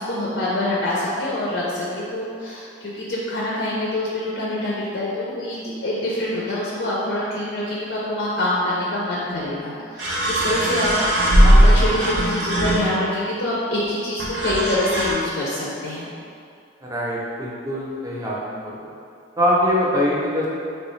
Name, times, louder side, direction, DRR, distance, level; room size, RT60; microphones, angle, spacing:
voice 1, 0.0-16.1, left 1 dB, 75° left, -6 dB, 0.5 m, -25 dB
sound 1, 9.3-9.4 10.0-13.2 14.2-15.1, equal, 80° right, 0.7 m, -18 dB
voice 2, 16.8-18.8 19.4-20.5, equal, 20° right, -5 dB, 0.6 m, -23 dB
3.2 x 3.1 x 3.1 m, 2.4 s
head